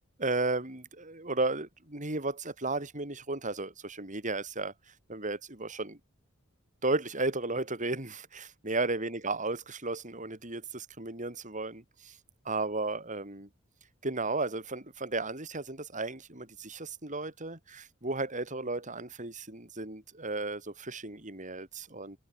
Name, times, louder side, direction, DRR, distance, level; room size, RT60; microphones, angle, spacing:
voice 1, 0.2-4.7 5.1-6.0 6.8-12.1 12.4-13.5 14.0-22.2, right 3 dB, 40° right, 5.9 m, -34 dB
head